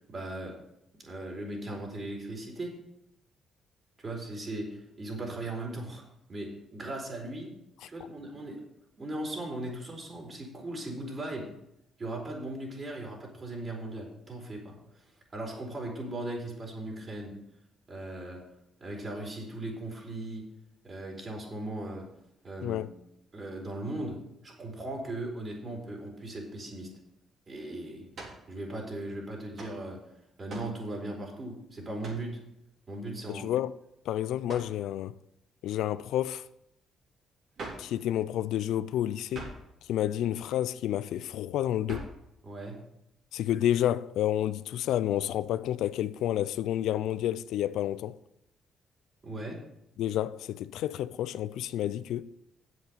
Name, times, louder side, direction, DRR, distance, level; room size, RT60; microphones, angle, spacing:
voice 1, 0.1-0.5 1.0-2.7 4.0-6.0 6.3-7.5 7.9-8.6 9.0-11.5 12.0-14.8 15.3-17.3 17.9-18.4 18.8-20.4 20.8-22.0 22.4-22.8 23.3-24.2 24.4-26.9 27.5-28.0 28.5-30.0 30.4-32.4 32.9-33.5 42.4-42.8 49.2-49.6, right 1 dB, 35° right, 4.4 m, -38 dB
sound 1, 28.1-28.5 29.6-29.8 30.5-30.8 32.0-32.3 34.5-34.8 37.6-37.9 39.3-39.7 41.9-42.2, right 3 dB, 60° right, 3.9 m, -42 dB
voice 2, 33.3-33.7 34.1-35.2 35.6-36.4 37.8-39.5 39.9-42.1 43.3-48.2 50.0-52.3, left 12 dB, 85° left, 0.4 m, -30 dB
8.4 x 7.8 x 7.0 m
cardioid pair, 90°, 0 cm